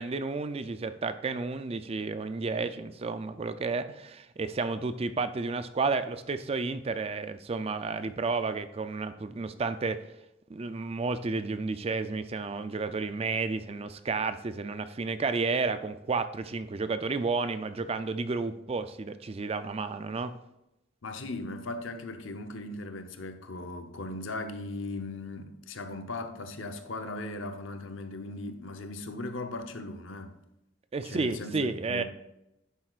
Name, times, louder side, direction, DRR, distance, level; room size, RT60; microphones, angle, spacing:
voice 1, 0.0-10.0 10.5-20.3 30.9-32.0, right 4 dB, 30° right, 0.4 m, -31 dB
voice 2, 21.0-30.4 31.0-32.0, left 2 dB, 90° left, 0.8 m, -38 dB
10.5 x 7.6 x 2.4 m
head